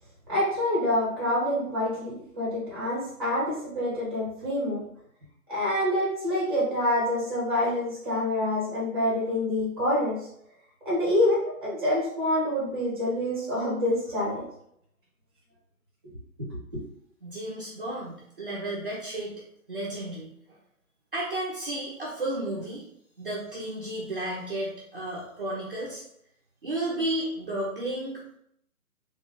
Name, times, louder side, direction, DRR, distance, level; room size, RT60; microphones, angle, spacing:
voice 1, 0.3-4.8 5.5-10.2 10.8-14.4 16.4-16.8, left 1 dB, 15° right, -7 dB, 0.9 m, -27 dB
voice 2, 17.2-19.3 19.7-20.6 21.1-22.8 23.2-26.0 26.6-28.3, right 1 dB, 40° right, -5 dB, 0.7 m, -33 dB
3.3 x 2.1 x 3.8 m, 0.70 s
hypercardioid pair, 170°, 44 cm